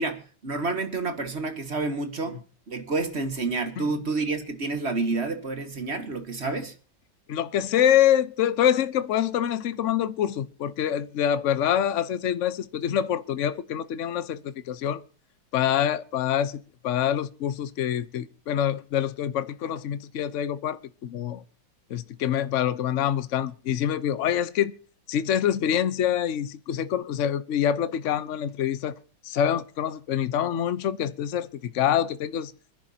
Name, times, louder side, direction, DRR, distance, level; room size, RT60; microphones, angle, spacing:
voice 1, 0.0-6.7, right 3 dB, 35° right, 1.6 m, -29 dB
voice 2, 7.3-15.0 15.5-21.4 21.9-24.7 25.1-28.9 29.2-32.5, left 10 dB, 60° left, 0.8 m, -26 dB
25.5 x 10.5 x 2.8 m
omnidirectional pair, 2.3 m